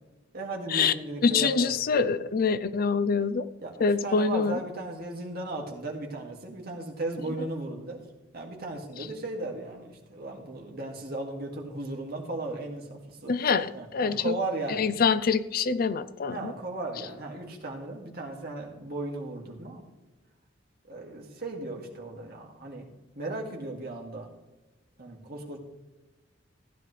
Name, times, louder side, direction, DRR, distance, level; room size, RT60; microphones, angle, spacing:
voice 1, 0.3-1.8 3.6-8.0 8.3-13.3 13.7-14.9 16.3-19.8 20.9-22.9 23.2-24.3 25.0-25.6, right 2 dB, 55° right, 1 dB, 2.2 m, -36 dB
voice 2, 1.2-3.5 3.8-4.6 13.3-14.4 14.7-16.5, left 5 dB, 50° left, 15 dB, 0.5 m, -25 dB
15.5 x 10.5 x 3.3 m, 1.1 s
head